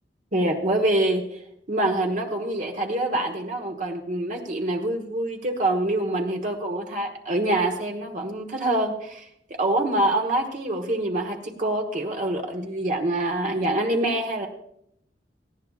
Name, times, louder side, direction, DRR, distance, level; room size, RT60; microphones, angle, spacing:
voice 1, 0.3-1.2 1.7-9.2 9.5-14.5, right 1 dB, 45° right, 2 dB, 1.4 m, -25 dB
18.0 x 14.5 x 2.4 m, 0.73 s
head